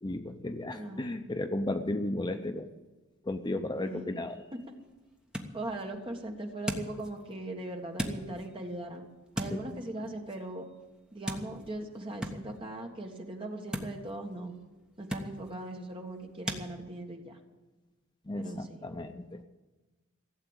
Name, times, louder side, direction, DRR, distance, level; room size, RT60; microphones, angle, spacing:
voice 1, 0.0-2.7 3.2-4.5 9.5-9.6 18.3-19.4, left 1 dB, 20° left, 7 dB, 0.5 m, -34 dB
voice 2, 0.7-1.2 3.8-4.1 5.5-9.0 9.3-10.7 11.1-14.5 15.0-17.4 18.3-18.8, right 1 dB, 25° right, 2 dB, 1.7 m, -40 dB
sound 1, 4.1-16.7, equal, 5° right, 1.1 m, -42 dB
15.5 x 8.1 x 9.0 m, 1.2 s
head